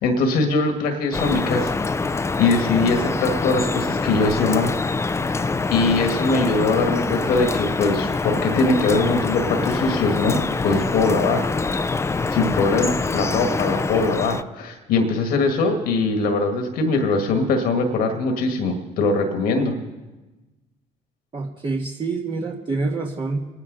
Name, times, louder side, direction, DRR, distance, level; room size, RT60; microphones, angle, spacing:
voice 1, 0.0-1.8 2.4-4.7 5.7-11.5 12.3-19.7, left 3 dB, 70° left, 4 dB, 1.6 m, -21 dB
Drip, 1.1-14.4, left 3 dB, 15° left, 0.5 m, -24 dB
voice 2, 21.3-23.4, right 3 dB, 30° right, -1 dB, 1.5 m, -26 dB
24.0 x 9.8 x 3.9 m, 1.1 s
supercardioid pair, 70°, 16 cm